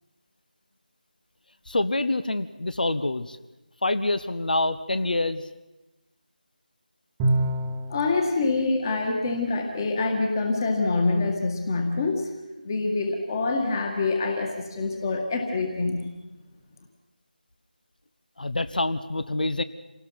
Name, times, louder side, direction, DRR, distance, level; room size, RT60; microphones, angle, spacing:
voice 1, 1.7-3.4 3.8-5.4 18.4-19.6, left 2 dB, 65° left, 13 dB, 1.1 m, -26 dB
Bowed string instrument, 7.2-8.1, right 1 dB, 10° right, 1.1 m, -24 dB
voice 2, 7.9-12.3 12.6-16.0, left 3 dB, 25° left, 3 dB, 2.1 m, -25 dB
27.5 x 18.5 x 6.0 m, 1.1 s
figure-of-eight pair, 165°, 5 cm